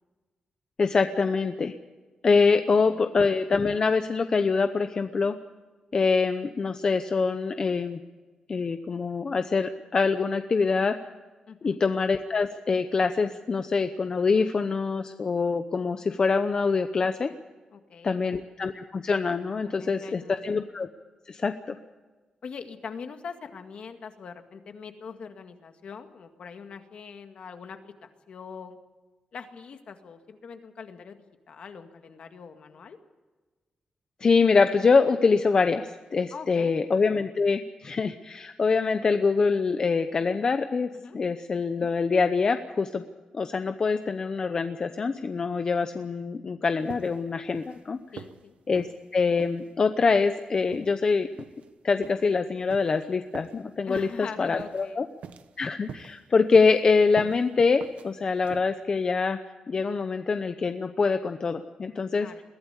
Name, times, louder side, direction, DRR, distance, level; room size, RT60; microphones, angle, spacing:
voice 1, 0.8-1.7 2.2-5.3 5.9-8.0 8.5-10.9 11.6-17.3 18.0-20.9 21.3-21.7 34.2-40.9 41.1-43.0 43.3-48.0 48.7-48.9 49.1-51.3 51.8-55.1 55.6-59.4 59.7-62.3, left 4 dB, 35° left, 8 dB, 0.8 m, -24 dB
voice 2, 11.5-11.8 17.7-18.2 19.6-20.4 22.4-28.8 29.3-31.2 31.5-33.0 36.3-36.7 41.0-41.2 48.1-48.6 53.9-55.0 62.2-62.4, left 6 dB, 55° left, 6 dB, 2.0 m, -42 dB
sound 1, 46.9-47.3 47.5-47.8 48.2-48.4 48.8-49.0 49.4-49.6 50.1-50.3 50.7-50.9 51.4-51.7 52.0-52.2 52.7-52.9 53.3-53.6 54.0-54.2 54.6-54.9 55.2-55.6 55.9-56.2 56.5-56.8 57.2-57.4 57.8-58.1 58.4-58.6, right 7 dB, 85° right, 1.1 m, -43 dB
22.5 x 16.0 x 8.2 m, 1.3 s
wide cardioid pair, 175°, 2 cm